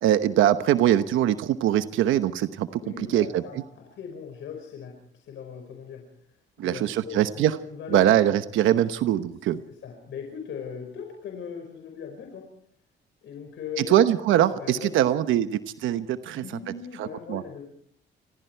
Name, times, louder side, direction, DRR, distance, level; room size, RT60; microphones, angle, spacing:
voice 1, 0.0-2.7 3.1-3.4 6.6-7.5 7.9-9.6 13.9-16.4 17.0-17.4, right 12 dB, 85° right, 11 dB, 1.0 m, -22 dB
voice 2, 2.8-6.0 6.3-8.2 9.7-12.5 13.2-14.1 14.6-15.2 16.4-17.6, left 7 dB, 75° left, 3 dB, 5.2 m, -39 dB
28.0 x 20.5 x 4.6 m, 0.63 s
cardioid pair, 90°, 20 cm